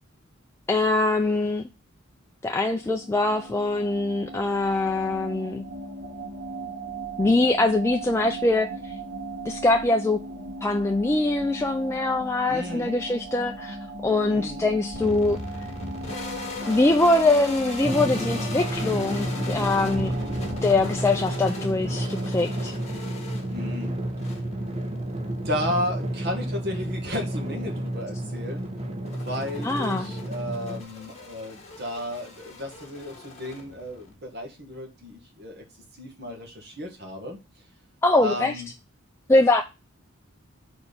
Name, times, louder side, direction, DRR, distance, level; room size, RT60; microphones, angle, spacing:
voice 1, 0.7-1.7 2.4-5.7 7.2-8.9 9.5-10.2 10.6-13.8 14.0-15.4 16.6-20.1 20.6-22.7 29.6-30.1 38.0-38.6 39.3-39.6, left 2 dB, 15° left, 0.3 m, -23 dB
sound 1, 2.7-21.5, right 2 dB, 80° right, 1.9 m, -38 dB
voice 2, 12.5-13.0 14.3-14.7 23.5-23.9 25.5-28.7 29.2-35.6 36.0-37.4 38.2-38.7, left 1 dB, 50° right, 1.7 m, -33 dB
sound 2, 14.9-34.1, left 3 dB, 35° left, 1.7 m, -40 dB
Drum, 17.8-30.8, right 1 dB, 30° right, 0.8 m, -31 dB
4.4 x 4.4 x 5.3 m
head